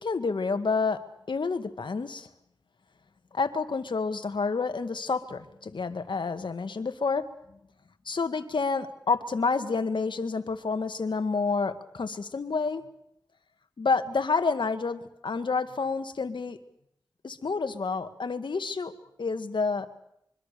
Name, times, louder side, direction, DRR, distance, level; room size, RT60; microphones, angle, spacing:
voice 1, 0.0-2.3 3.3-7.3 8.1-12.8 13.8-16.6 17.2-18.9 19.2-19.9, left 4 dB, 80° left, 10 dB, 2.0 m, -29 dB
25.5 x 24.0 x 6.9 m, 0.75 s
cardioid pair, 40°, 8 cm